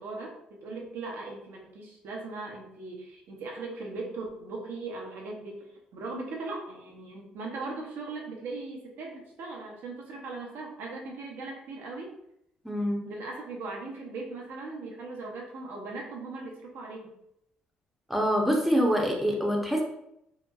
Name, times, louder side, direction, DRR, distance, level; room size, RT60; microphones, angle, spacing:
voice 1, 0.0-12.2 13.0-17.1, right 3 dB, 70° right, -1 dB, 0.6 m, -39 dB
voice 2, 12.6-13.0 18.1-19.8, equal, 5° right, 0 dB, 0.7 m, -25 dB
2.8 x 2.1 x 2.2 m, 0.78 s
hypercardioid pair, 50°, 4 cm